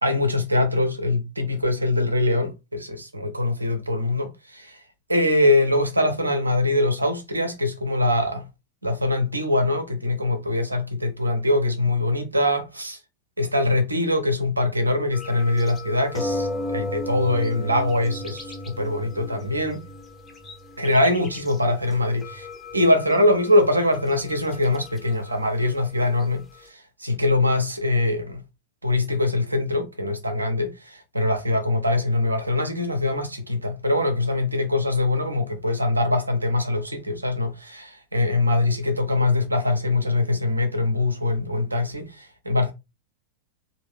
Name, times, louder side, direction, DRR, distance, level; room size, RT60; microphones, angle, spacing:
voice 1, 0.0-4.8 5.1-8.4 8.8-13.0 13.4-19.8 20.8-22.5 22.7-26.4 27.0-28.4 28.8-42.7, left 2 dB, 80° right, 0.8 m, -23 dB
sound 1, 15.1-26.7, left 1 dB, 15° left, 0.9 m, -35 dB
3.4 x 2.5 x 3.4 m
figure-of-eight pair, 90°, 0 cm